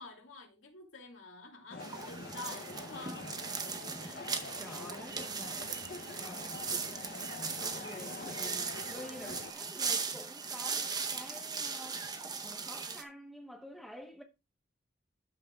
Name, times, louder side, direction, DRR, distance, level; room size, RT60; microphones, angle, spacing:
voice 1, 0.0-3.4, left 3 dB, 80° left, 2.5 m, -48 dB
sound 1, 1.7-9.5, left 3 dB, 50° left, 0.7 m, -46 dB
sound 2, 1.8-13.0, right 5 dB, 20° right, 0.7 m, -38 dB
voice 2, 4.0-5.7 6.2-7.3 7.6-12.0 12.4-14.2, equal, ahead, 0.9 m, -50 dB
13.5 x 5.9 x 2.3 m
head